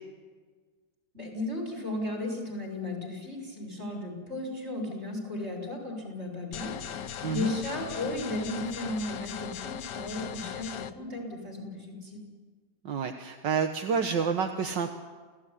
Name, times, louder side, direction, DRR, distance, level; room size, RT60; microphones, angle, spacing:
voice 1, 1.1-12.3, left 2 dB, 35° right, 3 dB, 6.9 m, -35 dB
sound 1, 6.5-10.9, left 8 dB, 70° left, 1.6 m, -38 dB
voice 2, 12.9-14.9, right 6 dB, 75° right, 5 dB, 2.0 m, -29 dB
29.0 x 17.0 x 10.0 m, 1.5 s
omnidirectional pair, 2.0 m